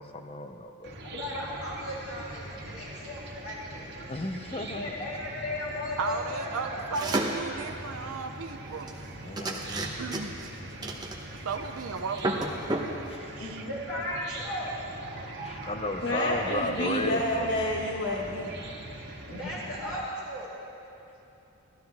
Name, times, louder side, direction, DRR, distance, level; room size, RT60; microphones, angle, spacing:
voice 1, 0.0-1.0 4.1-4.9 9.2-9.9 13.1-13.3 15.4-17.5, left 2 dB, 25° left, 6 dB, 0.6 m, -34 dB
Chicken rooster / Cricket, 0.8-19.9, right 1 dB, 50° right, 1.7 m, -42 dB
voice 2, 1.0-4.2 4.5-6.9 13.4-14.7 19.3-20.5, left 1 dB, 90° left, -8 dB, 2.9 m, -36 dB
voice 3, 6.0-8.9 10.0-10.3 11.4-12.4 13.4-13.6, right 4 dB, 75° right, 4 dB, 0.6 m, -35 dB
sound 1, 6.9-7.5 8.9-9.0 9.4-10.5 10.8-11.5 11.8-11.9 12.2-12.9, right 2 dB, 20° right, 0.9 m, -30 dB
voice 4, 16.0-18.6, left 1 dB, 55° left, -2 dB, 1.5 m, -29 dB
17.5 x 13.0 x 3.5 m, 2.9 s
head